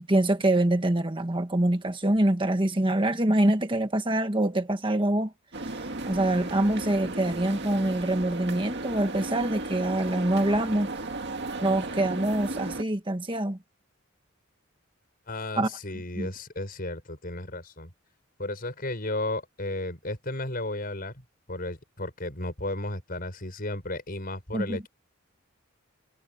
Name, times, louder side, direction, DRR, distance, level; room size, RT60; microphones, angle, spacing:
voice 1, 0.0-5.3 6.1-10.9 11.6-13.6 15.6-15.7 16.2-16.3 24.5-24.8, right 1 dB, 25° right, 1.4 m, -25 dB
sound 1, 5.5-12.8, right 2 dB, 55° right, 2.1 m, -35 dB
voice 2, 15.3-17.9 18.4-24.9, left 2 dB, 45° left, 6.1 m, -34 dB
head